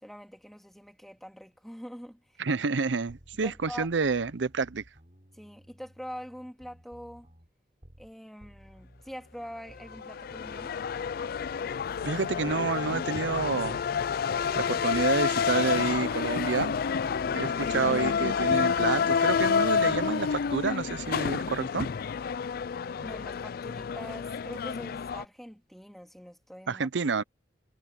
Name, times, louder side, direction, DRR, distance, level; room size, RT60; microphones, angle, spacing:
voice 1, 0.0-2.4 3.4-3.9 5.3-7.3 8.0-10.8 23.0-27.0, equal, ahead, 2.4 m, -44 dB
voice 2, 2.4-4.8 12.0-13.8 14.5-16.7 17.3-21.9 26.7-27.2, right 4 dB, 85° right, 0.7 m, -29 dB
sound 1, 3.1-8.1 8.4-13.2, equal, 40° right, 7.9 m, -56 dB
sound 2, 9.9-25.2, left 6 dB, 55° left, 0.4 m, -29 dB
head